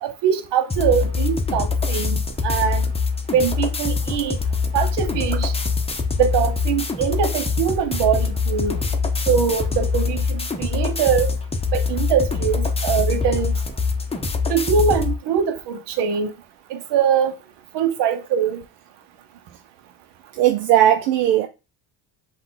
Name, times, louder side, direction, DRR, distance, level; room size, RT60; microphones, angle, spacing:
voice 1, 0.0-2.9 3.3-4.4 4.7-5.5 6.2-8.8 9.3-11.3 11.7-13.6 14.5-16.3 16.7-17.3 17.7-18.6, right 7 dB, 60° right, 0.9 m, -22 dB
sound 1, 0.7-15.1, left 4 dB, 10° left, 0.8 m, -24 dB
voice 2, 20.4-21.5, right 12 dB, 80° right, 0.6 m, -17 dB
5.6 x 2.5 x 3.8 m
hypercardioid pair, 70°, 47 cm